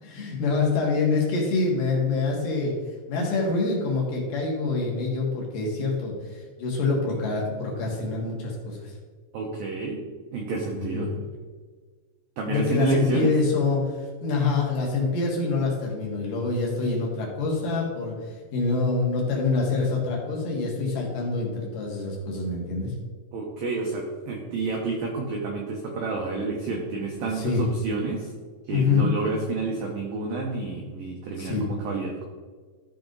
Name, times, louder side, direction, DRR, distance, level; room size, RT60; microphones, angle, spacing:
voice 1, 0.0-2.7 3.1-8.9 10.7-11.1 12.5-22.9 27.2-27.6 28.7-29.1 31.4-31.6, left 3 dB, 55° left, -1 dB, 2.7 m, -26 dB
voice 2, 9.3-10.0 10.3-11.1 12.4-13.3 23.3-28.3 28.7-32.2, right 3 dB, 85° right, 0 dB, 2.0 m, -29 dB
14.5 x 5.0 x 3.9 m, 1.5 s
omnidirectional pair, 5.6 m